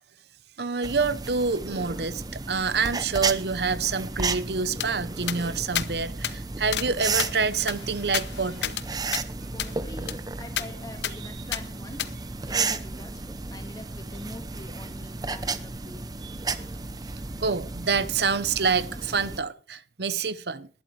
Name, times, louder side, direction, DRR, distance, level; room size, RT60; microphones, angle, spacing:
voice 1, 0.6-8.7 11.0-11.4 16.2-16.7 17.4-20.7, right 5 dB, 70° right, 0.9 m, -27 dB
sound 1, 0.8-19.4, right 3 dB, 20° right, 0.8 m, -33 dB
sound 2, 4.8-4.9 5.3-5.4 5.8-5.9 6.2-6.4 6.7-6.9 7.2-8.9 9.1-9.2 9.6-9.7 10.1-10.2 10.6-10.7 11.0-11.2 11.5-11.6 12.0-12.1, left 10 dB, 85° left, 0.9 m, -31 dB
voice 2, 9.5-16.1, left 1 dB, 20° left, 1.8 m, -44 dB
20.0 x 12.0 x 3.3 m
head